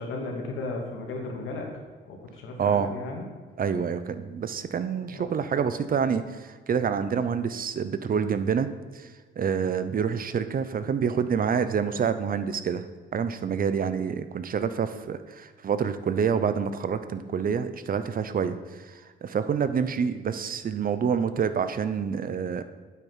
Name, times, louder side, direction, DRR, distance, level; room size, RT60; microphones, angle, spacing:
voice 1, 0.0-1.7 2.1-3.3 5.1-5.3, left 3 dB, 85° left, 1 dB, 2.4 m, -35 dB
voice 2, 3.6-8.7 8.9-9.1 9.4-12.9 13.1-22.6, right 7 dB, 45° right, 11 dB, 0.8 m, -27 dB
9.1 x 8.2 x 5.6 m, 1.4 s
cardioid pair, 90°, 20 cm